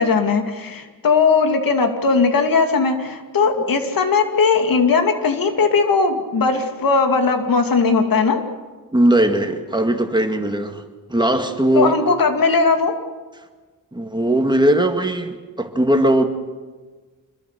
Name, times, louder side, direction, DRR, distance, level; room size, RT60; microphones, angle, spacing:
voice 1, 0.0-8.4 11.7-12.9, left 4 dB, 85° left, 6 dB, 2.5 m, -18 dB
voice 2, 8.9-10.8 11.1-12.0 13.9-16.2, right 1 dB, 15° right, 5 dB, 2.0 m, -18 dB
26.0 x 22.0 x 6.8 m, 1.3 s
wide cardioid pair, 105°, 34 cm